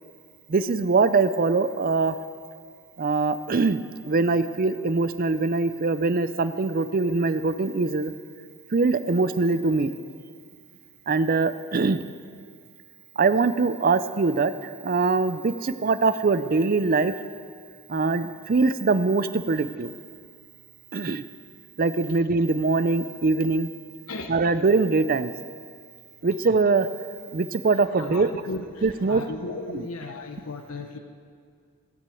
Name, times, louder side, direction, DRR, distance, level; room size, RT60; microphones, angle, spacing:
voice 1, 0.5-2.2 3.0-8.1 8.7-9.9 11.1-12.0 13.2-17.1 17.9-19.9 20.9-21.2 21.8-23.7 24.3-25.3 26.2-26.9 27.3-28.3 28.8-29.2 29.7-29.9, right 4 dB, 45° right, 13 dB, 0.5 m, -23 dB
voice 2, 28.5-31.0, left 3 dB, 85° left, 4 dB, 0.9 m, -35 dB
15.5 x 8.7 x 7.7 m, 2.2 s
head